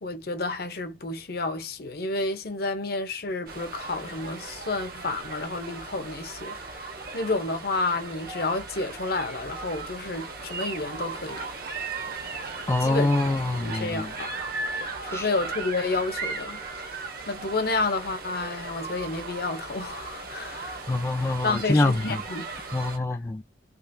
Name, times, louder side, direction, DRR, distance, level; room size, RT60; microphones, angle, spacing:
voice 1, 0.0-6.6 7.1-11.5 12.8-13.1 13.6-14.4 15.0-16.6 17.3-20.9 21.2-22.5, left 3 dB, 60° left, 0.8 m, -30 dB
sound 1, 3.5-23.0, right 3 dB, 55° right, 1.2 m, -37 dB
voice 2, 12.7-14.1 15.1-15.3 20.9-22.2 22.7-23.4, left 2 dB, 15° left, 0.4 m, -25 dB
3.7 x 3.0 x 2.7 m
head